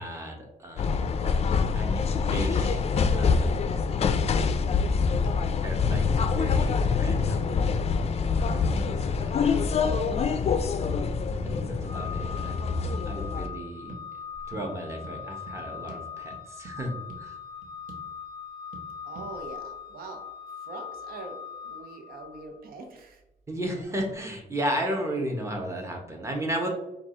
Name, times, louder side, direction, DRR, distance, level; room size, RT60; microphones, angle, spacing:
voice 1, 0.0-3.5 5.6-7.6 8.4-9.7 11.4-12.6 13.0-14.0 14.5-17.4 23.5-26.7, right 1 dB, 20° right, 1 dB, 1.0 m, -34 dB
sound 1, 0.8-13.5, left 5 dB, 45° left, 0.4 m, -25 dB
sound 2, 3.7-3.9 4.1-4.3 4.7-4.8 5.2-5.4 6.0-6.2 6.8-7.3 7.7-7.9 8.8-8.9 9.3-9.4 9.9-10.1 10.4-10.6 10.9-11.1 11.4-11.6 12.0-12.1 12.4-12.6 12.9-13.1 13.4-13.6 13.9-14.0 14.5-14.7 15.0-15.2 15.5-15.6 15.9-16.0 16.3-16.8 17.1-17.2 17.6-18.1 18.7-18.9 19.1-19.3, right 3 dB, 65° right, 1.0 m, -45 dB
Organ, 11.8-22.6, left 7 dB, 45° right, 1.1 m, -41 dB
voice 2, 19.0-20.2 20.6-21.4 21.6-23.2, right 3 dB, 90° right, 3 dB, 0.8 m, -42 dB
4.7 x 2.4 x 3.8 m, 0.91 s
cardioid pair, 100°, 15 cm